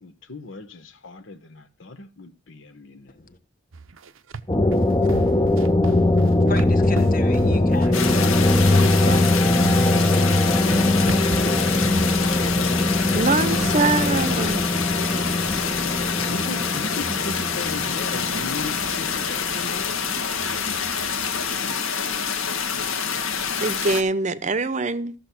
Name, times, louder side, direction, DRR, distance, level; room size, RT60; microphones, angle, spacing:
voice 1, 0.0-3.1 13.3-13.9 14.9-19.9, left 3 dB, 65° left, 1.0 m, -37 dB
sound 1, 3.7-13.7, right 3 dB, 75° right, 0.7 m, -34 dB
sound 2, 4.5-20.8, left 2 dB, 20° left, 0.7 m, -21 dB
voice 2, 6.4-9.8, left 3 dB, 40° left, 1.3 m, -36 dB
sound 3, 7.9-24.0, left 6 dB, 85° left, 1.8 m, -27 dB
voice 3, 13.1-14.6 23.6-25.1, right 3 dB, 35° right, 0.8 m, -23 dB
14.0 x 6.9 x 5.9 m
head